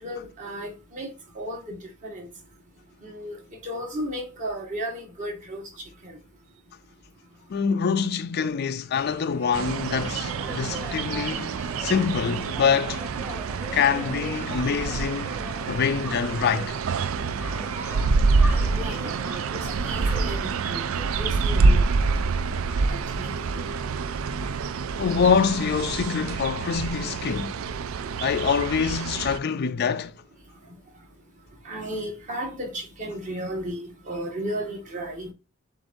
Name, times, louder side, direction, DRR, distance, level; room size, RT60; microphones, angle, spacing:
voice 1, 0.0-2.3 3.0-3.4 3.6-6.2 18.6-22.2 22.4-22.6 22.9-23.7 31.6-35.3, equal, 40° right, 1.5 m, -35 dB
voice 2, 7.5-13.0 13.7-15.3 15.7-16.8 22.7-22.9 25.0-27.6 28.2-30.1, left 6 dB, 50° left, 0.4 m, -25 dB
sound 1, 8.9-20.3, equal, 10° right, 1.1 m, -40 dB
sound 2, 9.5-29.4, right 4 dB, 80° right, 0.4 m, -27 dB
7.6 x 2.6 x 2.6 m
head